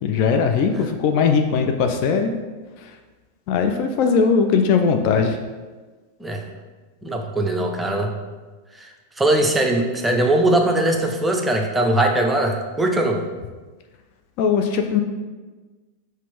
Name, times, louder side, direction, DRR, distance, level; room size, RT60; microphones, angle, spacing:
voice 1, 0.0-2.3 2.8-2.9 3.5-5.4 14.4-15.0, left 5 dB, 45° left, 5 dB, 0.4 m, -19 dB
voice 2, 7.0-8.1 8.7-8.9 9.2-13.2, right 1 dB, 10° right, 2 dB, 0.5 m, -20 dB
4.1 x 2.6 x 4.6 m, 1.3 s
figure-of-eight pair, 90°, 0 cm